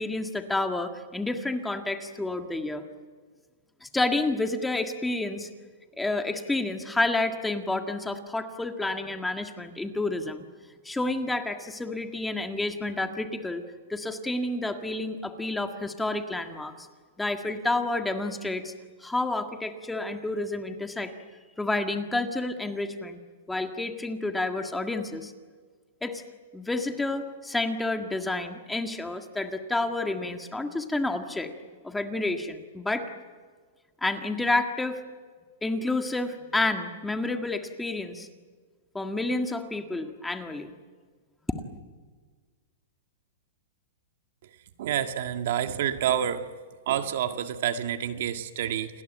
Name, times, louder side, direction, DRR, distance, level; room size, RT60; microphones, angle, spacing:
voice 1, 0.0-2.8 3.8-5.5 6.0-10.4 10.9-13.6 13.9-16.9 17.2-18.7 19.0-21.1 21.6-23.2 23.5-25.3 26.0-26.2 26.5-31.5 31.8-33.1 34.0-35.0 35.6-38.3 38.9-40.7, left 2 dB, 5° left, 6 dB, 1.7 m, -29 dB
voice 2, 44.8-46.6 46.9-49.0, right 10 dB, 60° right, 8 dB, 1.9 m, -28 dB
29.0 x 20.0 x 9.2 m, 1.5 s
hypercardioid pair, 150°, 0 cm